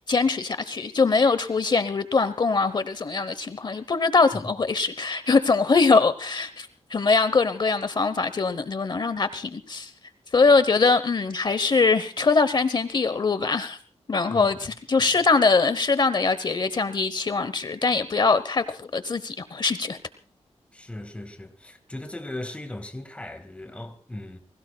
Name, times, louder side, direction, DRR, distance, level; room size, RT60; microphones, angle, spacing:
voice 1, 0.1-9.9 10.3-13.8 14.1-20.0, left 4 dB, 40° left, 1.0 m, -22 dB
voice 2, 14.3-14.6 15.0-15.1 20.7-24.4, left 1 dB, 10° left, 1.9 m, -38 dB
29.5 x 21.0 x 2.3 m
wide cardioid pair, 145°, 11 cm